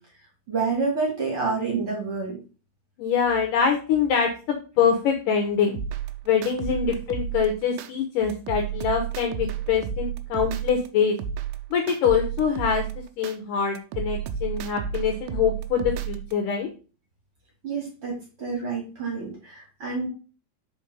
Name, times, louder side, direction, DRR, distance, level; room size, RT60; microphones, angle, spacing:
voice 1, 0.5-2.4 6.8-6.9 17.6-20.1, right 4 dB, 45° right, -2 dB, 2.2 m, -28 dB
voice 2, 3.0-4.3 4.8-5.8 6.3-11.2 11.7-12.8 13.2-16.7, left 7 dB, 75° left, 3 dB, 2.0 m, -24 dB
sound 1, 5.7-7.9 8.3-10.9 11.2-13.4 13.8-16.3, right 8 dB, 80° right, 2.4 m, -32 dB
5.4 x 4.5 x 5.2 m, 0.36 s
omnidirectional pair, 4.6 m